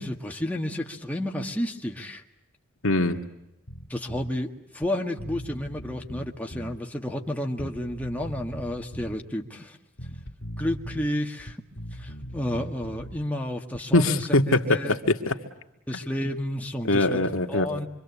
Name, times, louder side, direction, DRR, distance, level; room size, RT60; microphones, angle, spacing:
voice 1, 0.0-2.2 3.9-9.8 10.6-11.6 11.9-15.0 15.9-17.2 17.5-17.9, left 1 dB, 5° left, 1 dB, 1.8 m, -31 dB
voice 2, 2.8-3.2 13.9-15.4 16.8-17.7, left 2 dB, 75° left, 4 dB, 2.0 m, -22 dB
Bass guitar, 3.7-4.3 4.8-4.9 5.2-6.8 7.6-9.2 10.0-11.1 11.4-13.3, equal, 55° left, 2.3 m, -39 dB
26.5 x 24.5 x 8.3 m, 0.88 s
head